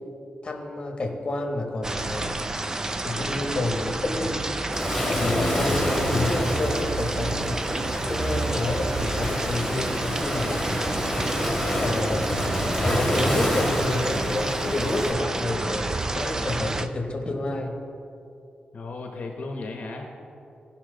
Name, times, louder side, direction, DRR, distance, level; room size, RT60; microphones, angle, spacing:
voice 1, 0.4-2.5 3.0-4.5 5.0-7.7 8.1-11.0 11.8-12.4 12.8-17.8, left 2 dB, 35° left, 2 dB, 1.2 m, -29 dB
sound 1, 1.8-16.9, right 2 dB, 20° right, 0.4 m, -30 dB
Waves surf, 4.7-15.1, equal, 5° left, 2.3 m, -28 dB
voice 2, 18.7-20.1, left 3 dB, 55° left, 2 dB, 0.9 m, -35 dB
15.5 x 5.9 x 3.8 m, 2.7 s
wide cardioid pair, 140°, 3 cm